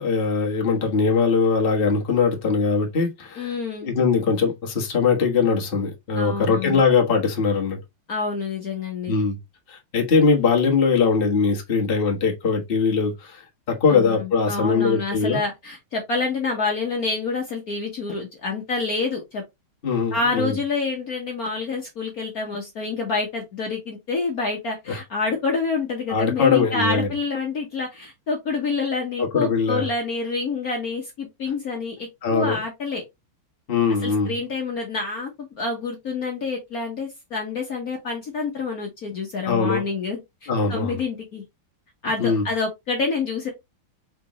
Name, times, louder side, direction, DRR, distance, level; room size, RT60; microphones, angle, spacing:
voice 1, 0.0-3.5 3.8-7.8 9.1-9.4 9.7-13.4 13.7-15.4 19.8-20.5 24.9-25.0 26.1-27.1 29.2-29.9 32.2-32.6 33.7-34.3 39.4-39.8 40.5-40.9 42.2-42.5, left 5 dB, 30° left, 1.4 m, -21 dB
voice 2, 3.4-3.9 6.1-6.8 8.1-9.1 13.9-19.4 20.1-33.0 34.0-35.3 35.6-41.4 42.0-43.5, left 4 dB, 50° left, 1.4 m, -27 dB
4.9 x 3.4 x 3.0 m
omnidirectional pair, 2.3 m